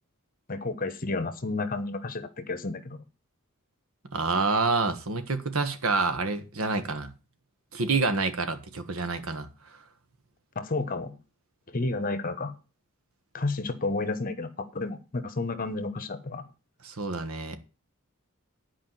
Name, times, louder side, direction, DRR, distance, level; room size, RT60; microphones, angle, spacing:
voice 1, 0.5-3.0 10.5-11.2 11.7-12.5 13.3-16.5, left 3 dB, 40° left, 1.2 m, -31 dB
voice 2, 4.1-7.1 7.7-9.8 16.8-17.6, right 3 dB, 80° right, 1.5 m, -28 dB
10.5 x 5.0 x 7.5 m
head